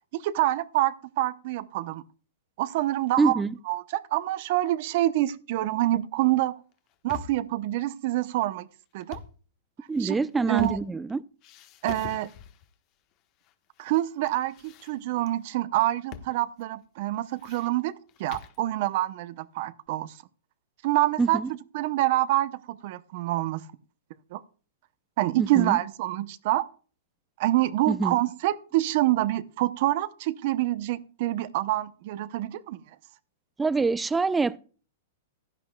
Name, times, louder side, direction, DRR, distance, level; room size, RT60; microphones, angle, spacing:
voice 1, 0.1-2.0 2.6-3.4 3.7-6.6 7.0-8.7 8.9-9.2 10.0-10.2 10.5-10.8 11.8-12.3 13.8-17.9 18.2-20.1 20.8-21.4 21.7-23.6 24.3-24.4 25.2-26.7 27.4-32.8, right 15 dB, 55° right, 0.8 m, -26 dB
voice 2, 3.2-3.5 9.9-11.2 21.2-21.5 25.4-25.8 27.9-28.2 33.6-34.6, right 4 dB, 10° right, 0.6 m, -25 dB
sound 1, 6.7-7.5 8.9-9.4 9.9-11.1 11.4-12.7 13.4-14.0 14.3-15.3 16.1-16.3 16.6-16.7 17.1-18.6, left 9 dB, 40° left, 1.3 m, -44 dB
15.5 x 11.0 x 2.3 m
hypercardioid pair, 115°, 0 cm